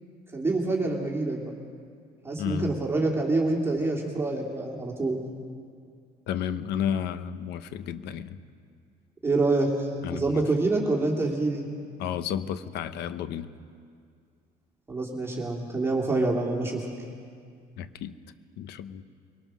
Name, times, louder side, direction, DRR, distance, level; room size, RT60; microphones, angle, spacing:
voice 1, 0.3-1.5 2.2-5.2 9.2-11.7 14.9-16.9, right 2 dB, 15° right, -2 dB, 2.6 m, -26 dB
voice 2, 2.4-2.8 6.3-8.4 10.0-10.4 12.0-13.5 17.8-18.1 18.6-19.0, left 9 dB, 80° left, 13 dB, 0.9 m, -32 dB
22.5 x 18.5 x 6.2 m, 2.2 s
cardioid pair, 110°, 17 cm